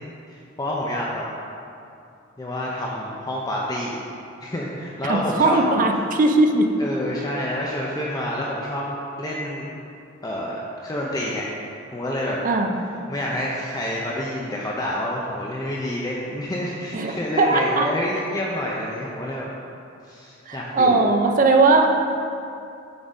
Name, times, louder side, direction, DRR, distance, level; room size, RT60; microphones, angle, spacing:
voice 1, 0.3-1.2 2.4-4.0 4.4-5.6 6.8-8.9 9.2-9.7 10.2-12.4 13.1-19.5 20.0-21.1, left 1 dB, 20° left, -4 dB, 0.6 m, -28 dB
voice 2, 5.0-6.7 12.4-12.8 16.9-17.9 20.5-21.9, right 3 dB, 40° right, 3 dB, 0.5 m, -19 dB
7.9 x 3.9 x 4.9 m, 2.6 s
head